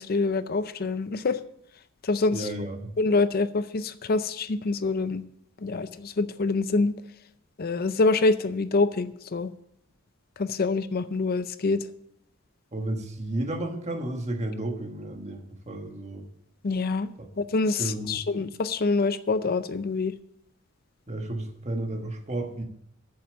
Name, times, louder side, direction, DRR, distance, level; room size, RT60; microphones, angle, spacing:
voice 1, 0.0-1.4 2.0-2.5 3.0-5.2 5.6-6.9 7.6-9.5 10.4-11.9 16.6-17.1 17.4-20.1, left 3 dB, 45° left, 12 dB, 0.5 m, -26 dB
voice 2, 2.3-3.0 12.7-16.3 17.8-18.2 21.1-22.6, right 1 dB, 35° right, 3 dB, 1.4 m, -32 dB
8.7 x 7.0 x 8.5 m, 0.73 s
head